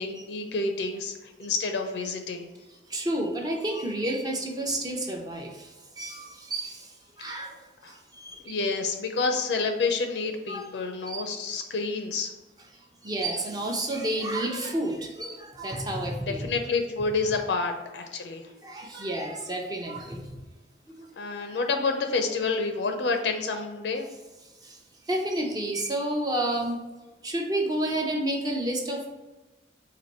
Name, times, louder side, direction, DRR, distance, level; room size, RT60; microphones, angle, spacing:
voice 1, 0.0-2.5 7.8-7.9 8.4-12.3 16.2-18.4 21.2-24.1, left 4 dB, 75° left, 5 dB, 0.5 m, -29 dB
voice 2, 2.9-7.6 7.9-8.4 10.5-10.7 11.0-11.4 12.7-16.5 17.3-17.4 18.6-20.3 20.9-21.1 21.4-21.5 24.6-24.8 25.1-26.8 27.2-29.1, right 1 dB, 20° right, 0 dB, 0.6 m, -30 dB
4.3 x 2.6 x 4.2 m, 1.1 s
head